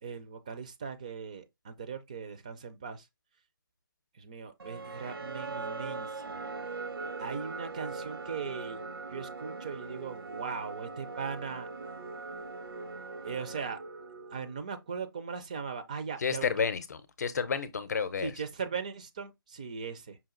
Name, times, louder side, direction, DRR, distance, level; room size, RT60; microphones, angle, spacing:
voice 1, 0.0-3.1 4.2-6.4 7.2-8.8 9.1-11.7 13.2-13.8 14.3-16.7 18.2-20.2, right 6 dB, 20° right, 0.4 m, -39 dB
sound 1, 4.6-14.8, right 3 dB, 85° right, 1.0 m, -41 dB
voice 2, 16.2-18.3, left 6 dB, 45° left, 0.7 m, -31 dB
5.7 x 2.4 x 3.7 m
figure-of-eight pair, 165°, 12 cm